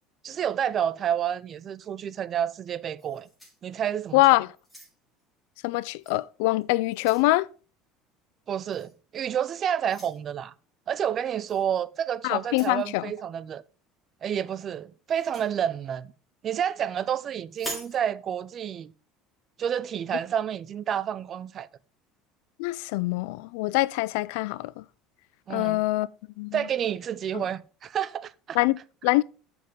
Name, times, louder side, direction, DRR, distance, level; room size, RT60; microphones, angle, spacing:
voice 1, 0.2-3.3 3.6-4.2 8.5-10.5 10.9-13.6 14.2-16.1 16.4-18.9 19.6-21.7 25.5-25.8 26.5-28.6, right 9 dB, 30° right, 0.4 m, -29 dB
sound 1, 3.0-4.1 4.6-5.2 6.0-6.2 6.6-7.3 8.7-8.9 9.8-10.2 11.5-11.7 12.4-12.8 15.1-15.5 17.5-18.0, right 1 dB, 5° left, 5.2 m, -43 dB
voice 2, 4.1-4.5 5.6-7.5 12.2-13.1 22.6-24.8 25.5-26.1 26.4-26.6 27.3-27.4 28.5-29.2, left 20 dB, 85° left, 0.4 m, -24 dB
7.6 x 5.9 x 5.1 m
cardioid pair, 155°, 0 cm